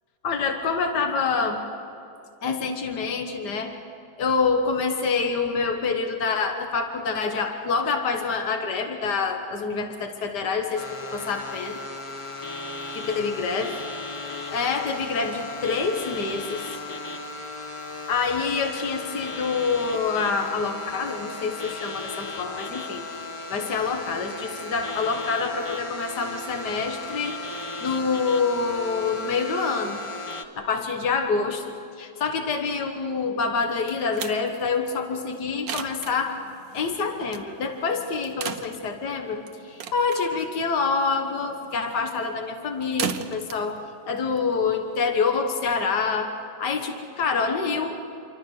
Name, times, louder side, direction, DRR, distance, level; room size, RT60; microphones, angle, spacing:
voice 1, 0.2-1.6 2.4-3.7 4.2-10.8 11.1-11.8 13.0-13.8 14.5-16.7 18.1-23.0 23.5-30.0 30.6-36.4 36.7-43.8 44.0-46.3 46.6-48.0, left 5 dB, 75° left, 5 dB, 2.0 m, -26 dB
sound 1, 10.7-30.4, left 3 dB, 20° left, 1.1 m, -36 dB
sound 2, 33.6-45.0, right 7 dB, 65° right, 1.4 m, -38 dB
27.5 x 24.5 x 6.6 m, 2.6 s
omnidirectional pair, 1.8 m